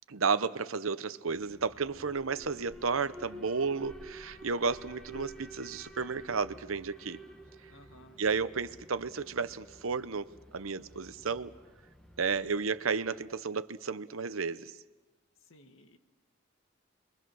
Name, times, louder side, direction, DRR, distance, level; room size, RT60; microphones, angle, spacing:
voice 1, 0.1-7.2 8.2-11.5 12.2-14.8, right 5 dB, 90° right, 13 dB, 0.9 m, -32 dB
Alarm, 1.3-13.3, right 1 dB, 5° left, 1.6 m, -51 dB
voice 2, 7.7-8.2 15.4-16.0, equal, 80° left, 6 dB, 1.8 m, -57 dB
29.5 x 23.0 x 6.3 m, 1.2 s
head